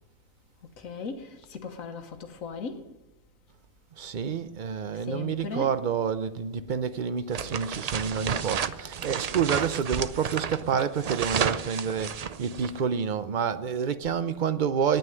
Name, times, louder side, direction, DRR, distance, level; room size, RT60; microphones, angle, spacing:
voice 1, 0.8-2.8 5.1-5.8, left 5 dB, 85° left, 1.5 m, -37 dB
voice 2, 4.0-15.0, right 7 dB, 50° right, 0.6 m, -28 dB
sound 1, 7.3-12.8, right 7 dB, 80° right, 0.3 m, -32 dB
9.5 x 9.2 x 9.3 m
omnidirectional pair, 1.4 m